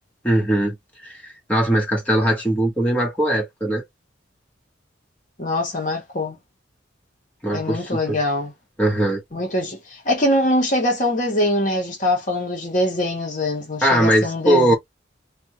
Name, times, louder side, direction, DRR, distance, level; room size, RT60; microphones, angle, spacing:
voice 1, 0.2-0.7 1.0-3.8 7.4-8.2 8.8-9.2 13.8-14.7, right 1 dB, 5° left, 1.2 m, -20 dB
voice 2, 5.4-6.4 7.5-8.5 9.3-14.7, left 1 dB, 40° left, 1.0 m, -23 dB
3.4 x 2.2 x 3.0 m
head